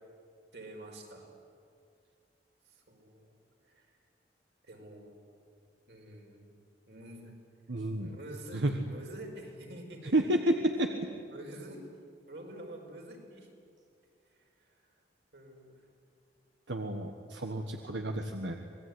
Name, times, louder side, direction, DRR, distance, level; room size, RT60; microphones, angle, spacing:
voice 1, 0.5-1.4 2.6-3.3 3.6-4.0 4.6-5.2 5.9-6.5 6.9-7.4 8.0-10.3 11.3-11.9 12.3-13.5 14.2-15.0 15.3-15.9, right 1 dB, 65° right, 1 dB, 5.0 m, -48 dB
voice 2, 7.7-8.1 8.5-8.7 10.1-10.9 16.7-18.5, right 1 dB, 90° right, 4 dB, 1.5 m, -30 dB
26.5 x 19.5 x 9.7 m, 2.3 s
head